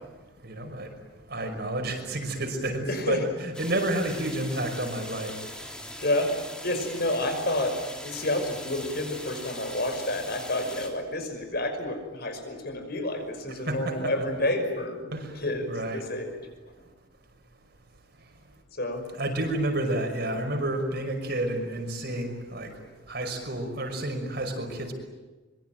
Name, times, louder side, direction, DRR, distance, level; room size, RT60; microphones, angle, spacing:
voice 1, 0.4-0.9 1.3-5.3 13.7-14.1 15.1-16.0 19.1-22.7 23.1-24.9, right 1 dB, 55° right, 4 dB, 5.8 m, -30 dB
voice 2, 2.9-3.3 6.0-6.4 6.6-16.4 18.8-19.1, left 1 dB, 55° left, 6 dB, 5.8 m, -29 dB
sound 1, 3.5-10.9, left 1 dB, 5° left, 3.1 m, -41 dB
25.0 x 24.0 x 9.2 m, 1.2 s
head